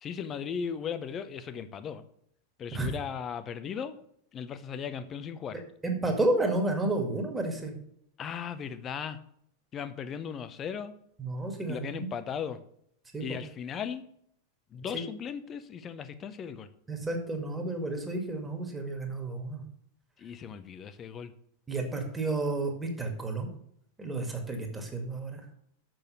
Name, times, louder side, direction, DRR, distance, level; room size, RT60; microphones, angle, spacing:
voice 1, 0.0-2.0 2.6-4.0 4.3-5.6 8.2-9.2 9.7-10.9 11.7-12.6 13.2-14.0 14.7-16.7 20.2-21.3, left 7 dB, 25° left, 12 dB, 0.7 m, -37 dB
voice 2, 5.8-7.7 11.2-12.1 13.1-13.3 16.9-19.6 21.7-23.5 24.0-25.4, right 2 dB, 10° right, 3 dB, 1.9 m, -31 dB
6.7 x 6.2 x 6.8 m, 0.70 s
figure-of-eight pair, 90°, 0 cm